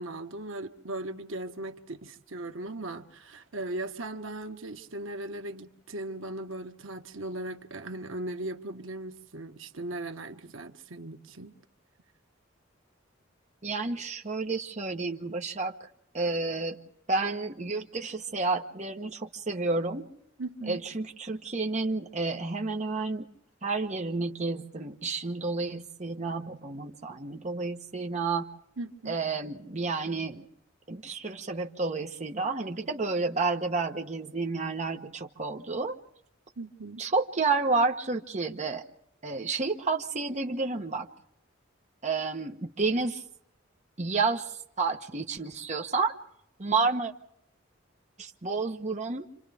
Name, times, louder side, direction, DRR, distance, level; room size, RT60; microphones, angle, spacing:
voice 1, 0.0-11.6 20.4-20.8 28.8-29.2 36.6-37.0, right 2 dB, 75° right, 6 dB, 1.4 m, -38 dB
voice 2, 13.6-15.9 16.1-16.8 17.1-20.1 20.7-23.3 23.6-28.5 29.1-30.5 30.9-35.9 37.0-38.8 39.2-41.1 42.0-43.2 44.0-46.1 46.6-47.1 48.2-49.3, right 3 dB, 35° right, 3 dB, 1.3 m, -30 dB
28.0 x 26.5 x 3.5 m, 0.76 s
head